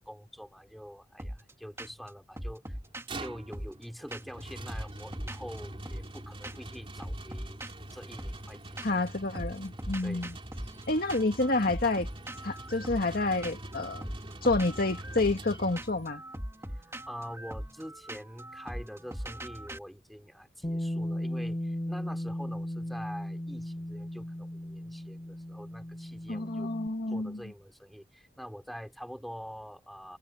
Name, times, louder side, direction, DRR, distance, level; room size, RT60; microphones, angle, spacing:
voice 1, 0.0-2.8 3.2-7.6 7.9-8.9 10.0-10.3 17.1-26.7 27.1-30.2, equal, ahead, 5.1 m, -45 dB
sound 1, 1.2-1.5 1.8-2.1 2.4-4.4 4.7-6.2 6.4-6.8 7.0-9.1 9.3-19.8, right 1 dB, 15° right, 3.0 m, -41 dB
sound 2, 2.8-16.2, right 1 dB, 30° right, 3.4 m, -44 dB
voice 2, 8.8-10.3 10.9-12.1 12.4-14.1 14.4-16.2 26.3-27.4, left 2 dB, 55° left, 2.1 m, -29 dB
Bass guitar, 20.6-26.9, left 1 dB, 25° left, 1.3 m, -36 dB
head